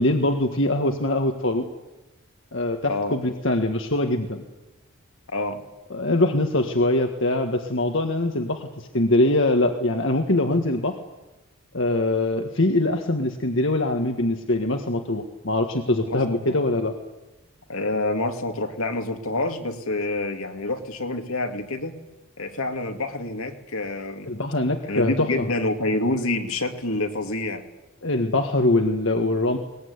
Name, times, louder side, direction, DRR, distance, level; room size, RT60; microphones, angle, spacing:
voice 1, 0.0-1.7 2.5-4.4 5.9-11.0 11.7-16.9 24.2-25.5 28.0-29.6, left 2 dB, 60° left, 4 dB, 1.7 m, -23 dB
voice 2, 5.3-5.6 16.1-16.6 17.7-21.9 22.4-24.3 24.8-27.6, left 2 dB, 75° left, 5 dB, 2.6 m, -27 dB
22.0 x 20.0 x 9.7 m, 1.0 s
head